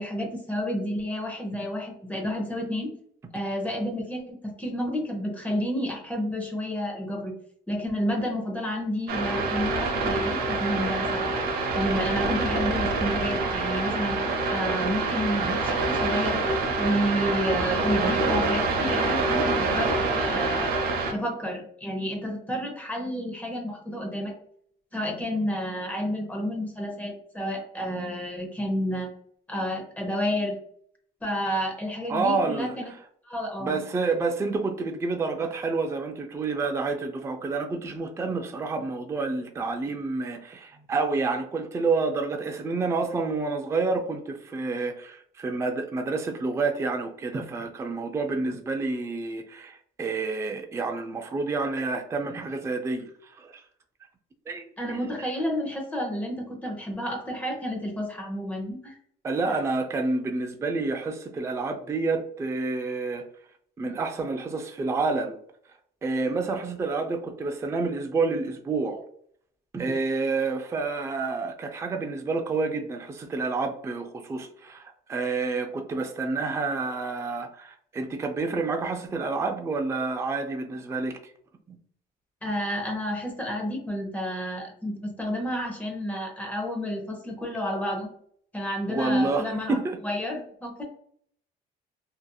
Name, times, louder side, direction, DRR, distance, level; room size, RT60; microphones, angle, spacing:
voice 1, 0.0-2.9 3.3-7.3 7.7-11.3 11.7-14.2 14.5-16.4 16.8-20.7 21.1-24.3 24.9-29.1 29.5-30.6 31.2-32.9 33.2-33.8 54.8-59.0 82.4-88.1 88.5-89.8 90.0-90.8, equal, 10° left, 1 dB, 0.8 m, -30 dB
sound 1, 9.1-21.1, right 3 dB, 65° right, 0.7 m, -26 dB
voice 2, 32.1-33.0 33.6-53.6 54.5-55.3 59.2-63.3 63.8-65.4 66.0-69.0 69.7-81.3 81.7-81.8 88.9-90.0, right 3 dB, 15° right, 4 dB, 0.4 m, -29 dB
2.8 x 2.4 x 2.2 m, 0.63 s
cardioid pair, 110°, 17 cm